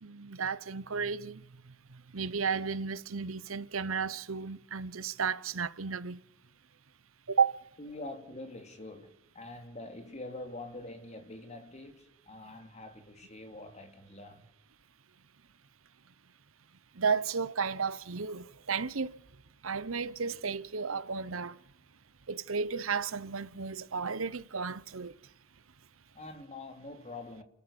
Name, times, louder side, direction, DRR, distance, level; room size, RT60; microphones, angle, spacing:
voice 1, 0.0-6.2 7.3-7.6 16.9-19.2 19.6-21.6 22.3-25.1, right 5 dB, 80° right, 1.0 m, -33 dB
voice 2, 7.8-14.5 26.1-27.4, left 2 dB, 35° left, 2.7 m, -45 dB
29.5 x 14.0 x 7.0 m
head